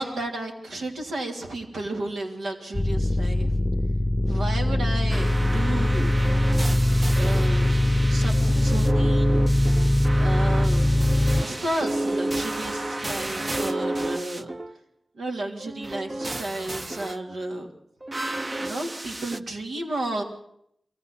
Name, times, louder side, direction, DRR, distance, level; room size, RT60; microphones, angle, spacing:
voice 1, 0.0-3.5 4.2-6.1 7.2-9.4 10.2-11.0 11.4-14.5 15.2-17.7 18.6-20.2, right 2 dB, 85° right, 1 dB, 3.2 m, -32 dB
sound 1, 2.7-11.4, left 1 dB, 15° left, 0.8 m, -21 dB
sound 2, 5.1-14.7 15.6-17.2 18.0-19.4, right 2 dB, 40° right, 1.0 m, -31 dB
22.5 x 15.5 x 8.4 m, 0.72 s
cardioid pair, 45°, 0 cm